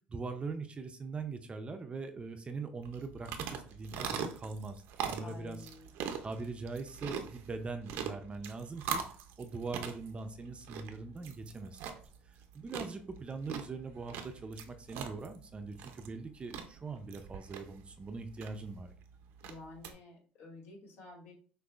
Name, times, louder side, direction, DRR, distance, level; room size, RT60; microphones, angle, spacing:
voice 1, 0.1-5.6 6.2-9.0 9.4-11.8 12.5-18.9, right 4 dB, 30° right, 7 dB, 0.6 m, -42 dB
sound 1, 2.8-19.9, right 7 dB, 75° right, 0.6 m, -42 dB
voice 2, 5.2-5.9 19.4-21.3, left 2 dB, 65° left, -3 dB, 2.2 m, -51 dB
6.2 x 2.6 x 2.5 m, 0.41 s
supercardioid pair, 80°, 4 cm